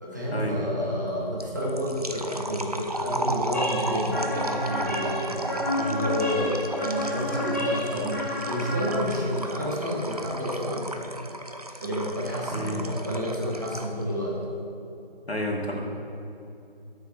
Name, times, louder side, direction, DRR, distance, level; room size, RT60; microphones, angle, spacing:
voice 1, 0.0-5.5 6.0-10.8 11.8-14.4, equal, 20° right, -5 dB, 1.0 m, -30 dB
sound 1, 1.4-14.0, right 1 dB, 40° right, 0.5 m, -34 dB
sound 2, 3.5-9.4, left 1 dB, 15° left, 1.0 m, -31 dB
voice 2, 15.3-15.8, left 1 dB, 90° left, 0 dB, 1.9 m, -30 dB
7.8 x 6.1 x 6.5 m, 2.7 s
figure-of-eight pair, 165°, 30 cm